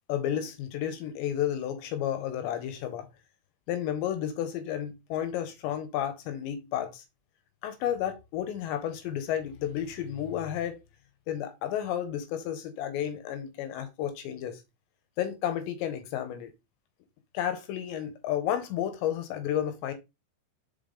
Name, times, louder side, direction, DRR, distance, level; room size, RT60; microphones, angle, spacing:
voice 1, 0.1-3.1 3.7-7.0 7.6-10.8 11.3-14.6 15.2-16.5 17.3-19.9, left 10 dB, 80° left, 2.9 m, -32 dB
5.5 x 5.2 x 3.6 m
omnidirectional pair, 5.4 m